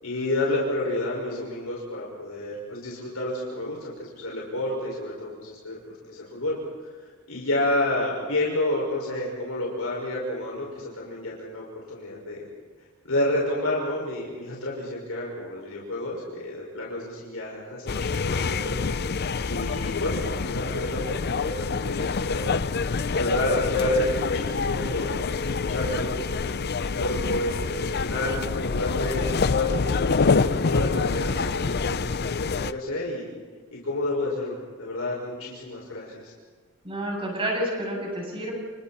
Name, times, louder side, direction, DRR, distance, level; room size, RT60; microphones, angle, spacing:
voice 1, 0.0-5.8 6.1-6.6 7.3-12.4 13.0-18.7 19.4-22.5 23.1-26.3 27.0-33.3 33.7-36.3, left 1 dB, 85° left, -3 dB, 5.8 m, -30 dB
sound 1, 17.9-32.7, left 4 dB, 50° left, 0.6 m, -26 dB
voice 2, 36.8-38.5, right 1 dB, 25° right, -1 dB, 7.9 m, -29 dB
29.0 x 29.0 x 4.4 m, 1.4 s
head